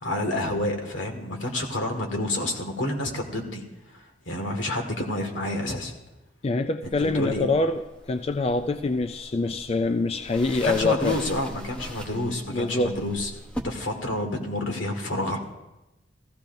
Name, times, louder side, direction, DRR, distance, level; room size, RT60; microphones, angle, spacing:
voice 1, 0.0-3.6 3.9-5.9 7.0-7.5 10.6-13.3 13.6-15.4, left 1 dB, 85° left, 3 dB, 1.9 m, -29 dB
voice 2, 6.4-11.2 12.5-13.0, left 3 dB, 30° left, 9 dB, 0.3 m, -25 dB
sound 1, 6.8-13.6, equal, 5° left, 0.9 m, -41 dB
15.5 x 14.5 x 2.6 m, 0.98 s
head